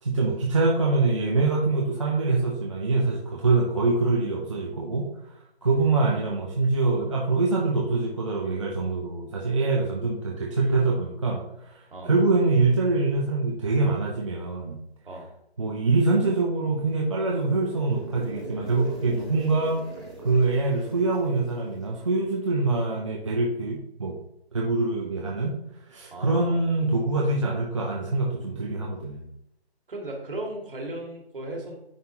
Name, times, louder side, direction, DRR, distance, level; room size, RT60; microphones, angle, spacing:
voice 1, 0.0-5.1 5.6-14.8 15.6-19.8 20.2-24.2 24.5-25.6 25.9-29.3, right 3 dB, 30° right, -2 dB, 0.6 m, -24 dB
sound 1, 16.7-22.7, right 1 dB, ahead, 1.6 m, -42 dB
voice 2, 26.1-26.6 29.9-31.7, right 1 dB, 55° right, 1 dB, 2.0 m, -36 dB
9.5 x 4.2 x 2.8 m, 0.79 s
figure-of-eight pair, 165°, 32 cm